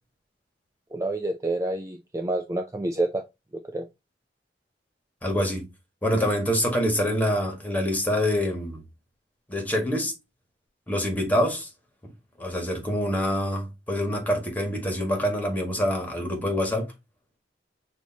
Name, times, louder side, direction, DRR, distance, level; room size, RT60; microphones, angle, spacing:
voice 1, 0.9-3.2 3.7-3.9, right 2 dB, 20° right, 0.4 m, -28 dB
voice 2, 5.2-5.7 6.0-8.8 9.5-10.1 10.9-11.7 12.4-16.9, equal, 10° left, 1.6 m, -25 dB
6.3 x 2.8 x 2.8 m
head